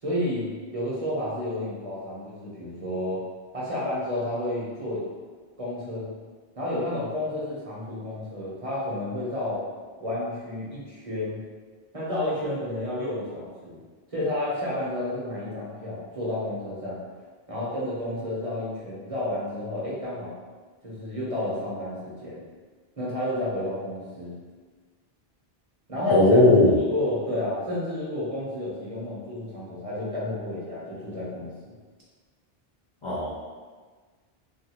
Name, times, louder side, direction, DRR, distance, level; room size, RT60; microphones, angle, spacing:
voice 1, 0.0-3.2 3.5-5.0 5.6-6.1 6.6-9.7 10.0-11.4 11.9-13.8 14.1-17.0 17.5-20.4 20.8-22.4 23.0-24.4 25.9-26.4 26.6-31.5, left 1 dB, 35° right, -7 dB, 0.8 m, -31 dB
voice 2, 26.1-26.7 33.0-33.3, left 2 dB, 55° left, -5 dB, 0.3 m, -17 dB
3.3 x 2.4 x 2.8 m, 1.4 s
omnidirectional pair, 1.0 m